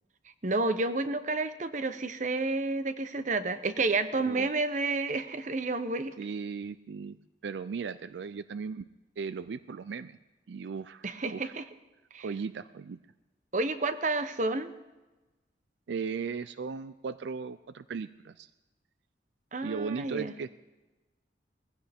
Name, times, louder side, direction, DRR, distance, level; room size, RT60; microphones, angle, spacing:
voice 1, 0.4-6.1 11.0-11.6 12.1-12.3 13.5-14.7 19.5-20.3, right 3 dB, 45° right, 11 dB, 0.8 m, -30 dB
voice 2, 6.2-7.2 7.4-8.9 9.2-10.2 10.5-11.5 12.2-13.0 15.9-18.5 19.6-20.5, right 5 dB, 80° right, 14 dB, 0.4 m, -37 dB
20.0 x 15.5 x 3.5 m, 1.1 s
head